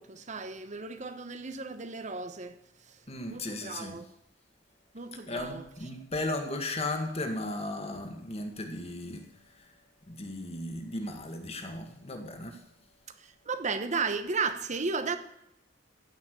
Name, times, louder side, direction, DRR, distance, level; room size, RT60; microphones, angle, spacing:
voice 1, 0.0-2.6 3.3-4.0 4.9-5.6 13.2-15.2, right 4 dB, 40° right, 1.1 m, -34 dB
voice 2, 3.1-4.0 5.3-9.7 10.1-12.6, left 2 dB, 35° left, 1.8 m, -36 dB
15.5 x 5.9 x 8.2 m
head